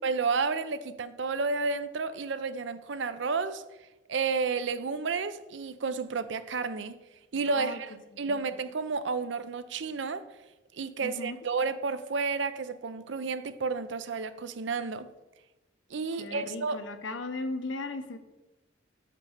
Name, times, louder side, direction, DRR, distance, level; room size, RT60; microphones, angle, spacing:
voice 1, 0.0-3.6 4.1-6.9 7.3-10.2 10.7-15.1 15.9-16.8, right 4 dB, 70° right, 0.5 m, -31 dB
voice 2, 7.5-7.8 8.1-8.4 11.0-11.4 16.2-18.2, left 2 dB, 80° left, 0.8 m, -37 dB
6.6 x 5.3 x 6.5 m
head